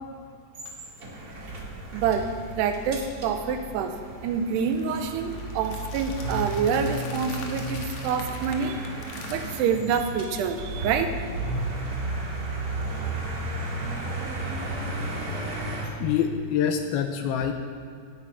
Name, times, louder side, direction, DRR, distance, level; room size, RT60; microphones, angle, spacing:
sound 1, 0.5-15.9, right 2 dB, 40° right, 1.3 m, -33 dB
voice 1, 1.9-4.0 4.2-8.8 9.3-11.2, right 6 dB, 85° right, 7 dB, 2.8 m, -27 dB
sound 2, 4.6-9.6, left 4 dB, 60° left, 2.0 m, -44 dB
voice 2, 16.0-17.5, left 8 dB, 80° left, 6 dB, 2.3 m, -25 dB
17.0 x 10.5 x 4.7 m, 2.4 s
omnidirectional pair, 4.8 m